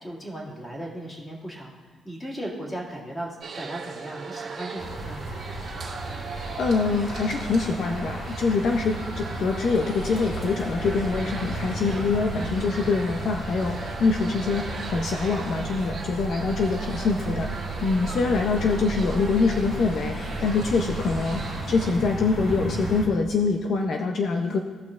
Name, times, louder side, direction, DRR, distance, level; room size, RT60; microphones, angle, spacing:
voice 1, 0.0-3.3 3.5-5.3, right 1 dB, 15° left, -3 dB, 1.9 m, -36 dB
sound 1, 3.4-21.9, right 4 dB, 50° right, 2.0 m, -39 dB
sound 2, 4.8-23.1, right 1 dB, 35° left, 2.2 m, -34 dB
voice 2, 6.5-24.6, left 4 dB, 55° left, 3 dB, 0.5 m, -25 dB
sound 3, 22.5-23.0, equal, 5° right, 0.7 m, -43 dB
16.5 x 5.9 x 2.4 m, 1.5 s
cardioid pair, 130°, 0 cm